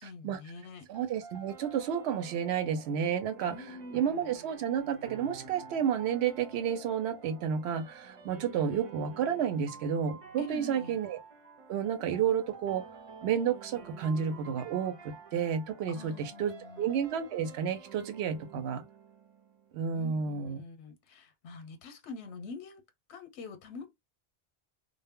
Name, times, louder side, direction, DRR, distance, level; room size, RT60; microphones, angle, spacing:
voice 1, 0.0-0.9 3.5-4.3 10.4-11.0 15.9-16.9 19.9-22.8 23.1-23.9, left 3 dB, 90° left, 0.9 m, -45 dB
sound 1, 0.9-19.9, right 5 dB, 40° right, 0.5 m, -50 dB
voice 2, 0.9-3.5 3.9-11.2 11.7-12.8 13.2-18.8 19.7-20.6, right 8 dB, 75° right, 0.8 m, -31 dB
2.1 x 2.0 x 3.5 m
omnidirectional pair, 1.1 m